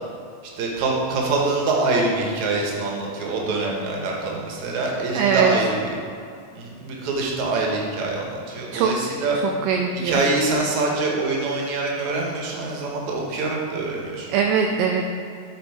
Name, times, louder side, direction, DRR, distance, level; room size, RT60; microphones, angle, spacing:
voice 1, 0.6-5.9 6.5-9.4 9.9-14.3, right 3 dB, 65° right, -1 dB, 2.2 m, -25 dB
voice 2, 5.2-5.5 8.7-8.9 9.7-10.1 14.3-15.0, right 7 dB, 80° right, 2 dB, 2.1 m, -20 dB
9.9 x 4.0 x 4.7 m, 2.4 s
omnidirectional pair, 4.0 m